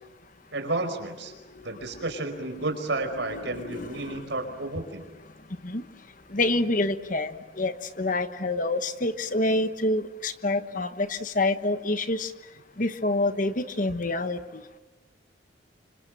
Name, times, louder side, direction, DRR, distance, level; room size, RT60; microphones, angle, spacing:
voice 1, 0.5-1.3 1.6-5.0, right 2 dB, 65° right, 6 dB, 5.0 m, -31 dB
voice 2, 3.3-4.3 5.6-5.8 6.3-12.3 12.8-14.6, left 2 dB, 40° left, 10 dB, 1.2 m, -27 dB
29.0 x 26.0 x 7.6 m, 1.1 s
head